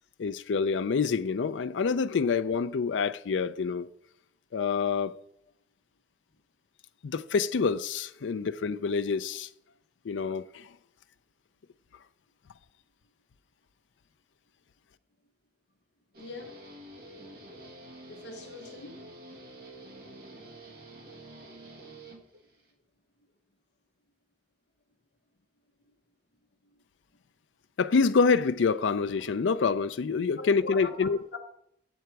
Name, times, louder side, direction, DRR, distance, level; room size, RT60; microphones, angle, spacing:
voice 1, 0.2-3.9 4.5-5.1 7.0-9.5 10.0-10.7 27.8-31.2, left 5 dB, 90° left, 0.4 m, -27 dB
Guitar, 16.1-22.7, right 1 dB, 55° right, 1.7 m, -48 dB
voice 2, 16.2-16.6 18.1-19.0 30.3-31.4, left 4 dB, 65° left, 0.9 m, -42 dB
8.1 x 7.6 x 4.6 m
head